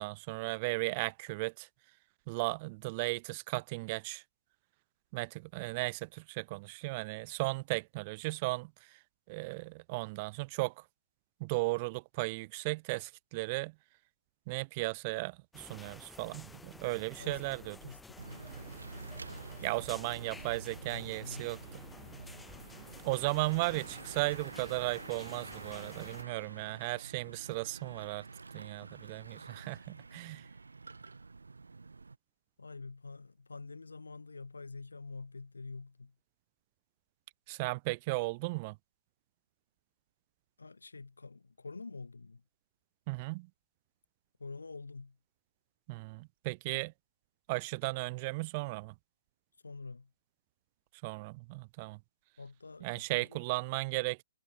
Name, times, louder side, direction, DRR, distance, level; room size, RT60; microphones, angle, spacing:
voice 1, 0.0-1.7 2.3-4.2 5.1-9.0 9.3-10.8 11.4-13.7 14.5-17.8 19.6-21.8 23.0-28.3 28.5-30.5 37.5-38.8 43.1-43.5 45.9-46.9 47.5-48.9 51.0-52.0 52.8-54.2, right 25 dB, 35° right, 0.6 m, -36 dB
sound 1, 15.5-26.2, left 3 dB, 5° left, 4.2 m, -53 dB
voice 2, 16.9-18.4 18.9-19.7 20.8-21.5 32.6-36.1 40.6-42.4 44.4-45.2 49.6-50.1 52.4-53.4, left 4 dB, 85° left, 4.6 m, -47 dB
Bicycle / Mechanisms, 18.2-32.2, right 4 dB, 85° right, 2.5 m, -48 dB
hypercardioid pair, 130°, 0 cm